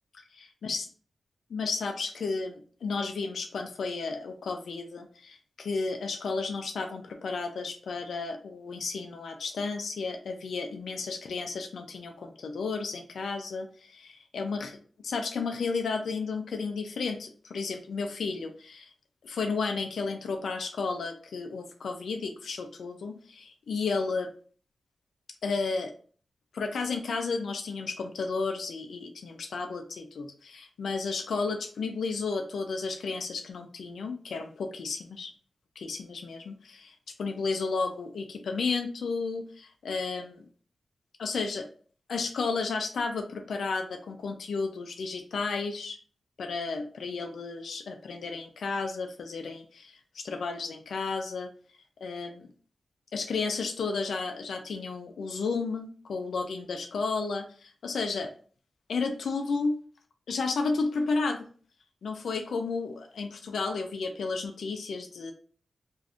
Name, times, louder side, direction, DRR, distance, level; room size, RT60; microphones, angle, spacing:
voice 1, 0.3-0.8 1.5-14.8 15.0-18.9 19.2-24.3 25.4-25.9 26.5-35.3 35.8-40.5 41.2-41.7 42.1-46.0 46.4-51.5 52.0-52.5 53.1-58.3 58.9-59.7 60.3-61.5 62.0-65.3, left 4 dB, 90° left, 5 dB, 0.4 m, -33 dB
2.5 x 2.3 x 3.4 m, 0.43 s
wide cardioid pair, 105°, 0 cm